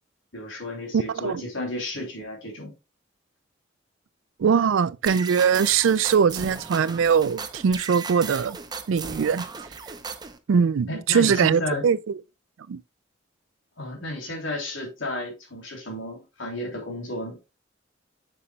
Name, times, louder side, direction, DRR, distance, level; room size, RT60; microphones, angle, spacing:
voice 1, 0.3-2.7 10.9-11.8 13.8-17.4, left 1 dB, 85° left, 3.2 m, -33 dB
voice 2, 0.9-1.4 4.4-8.6 8.9-9.4 10.5-12.0 12.7-12.8, right 6 dB, 80° right, 0.4 m, -21 dB
sound 1, 5.0-10.4, right 5 dB, 20° right, 0.7 m, -36 dB
6.9 x 6.9 x 2.3 m
head